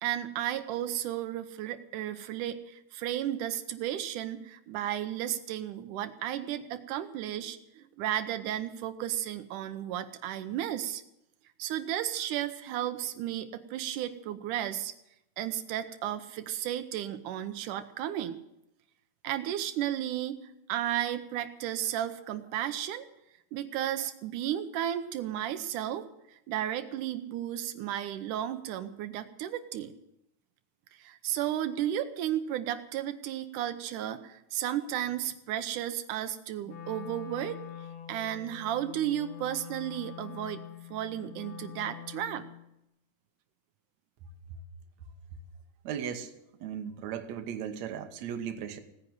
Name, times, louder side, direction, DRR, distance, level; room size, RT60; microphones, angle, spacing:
voice 1, 0.0-11.0 11.6-14.9 15.4-18.4 19.2-20.4 20.7-23.1 23.5-29.9 30.9-37.6 38.1-40.6 40.9-42.5, right 11 dB, 85° right, 9 dB, 2.3 m, -33 dB
Wind instrument woodwind instrument, 36.6-42.6, left 10 dB, 85° left, 2.9 m, -45 dB
voice 2, 45.8-46.3 46.6-48.8, right 8 dB, 70° right, 7 dB, 2.3 m, -36 dB
17.5 x 10.0 x 7.8 m, 0.83 s
omnidirectional pair, 3.5 m